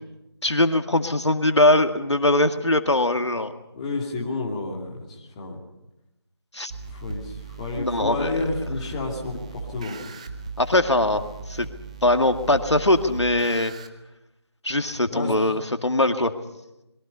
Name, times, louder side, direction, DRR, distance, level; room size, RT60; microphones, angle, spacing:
voice 1, 0.4-3.5 6.5-6.7 7.8-8.4 10.6-11.2 11.5-11.7 12.0-13.7 14.6-16.3, left 1 dB, 90° left, 7 dB, 2.1 m, -21 dB
voice 2, 3.7-5.6 6.9-10.2 15.1-15.5, left 3 dB, 15° left, -2 dB, 2.6 m, -30 dB
sound 1, 6.7-13.9, right 4 dB, 15° right, 0.8 m, -38 dB
27.0 x 22.0 x 5.6 m, 0.90 s
figure-of-eight pair, 165°, 14 cm